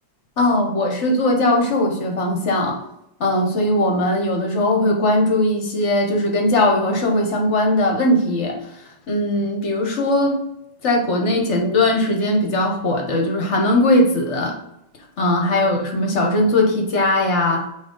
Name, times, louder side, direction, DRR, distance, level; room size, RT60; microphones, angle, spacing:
voice 1, 0.4-2.8 3.2-8.6 9.1-10.4 10.8-14.6 15.2-17.7, left 1 dB, 45° left, 1 dB, 1.1 m, -19 dB
8.3 x 3.2 x 3.8 m, 0.83 s
omnidirectional pair, 2.2 m